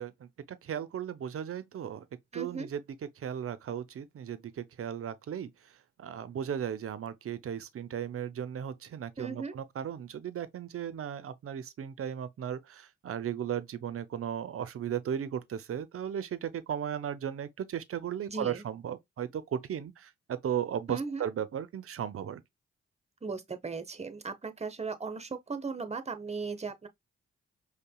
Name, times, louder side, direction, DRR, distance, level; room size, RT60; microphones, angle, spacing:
voice 1, 0.0-2.1 2.3-2.8 3.2-22.4, right 9 dB, 50° right, 0.5 m, -36 dB
voice 2, 2.3-2.7 9.2-9.6 18.3-18.6 20.9-21.3 23.2-26.9, right 4 dB, 20° right, 0.8 m, -37 dB
5.2 x 2.1 x 2.2 m
supercardioid pair, 40°, 30 cm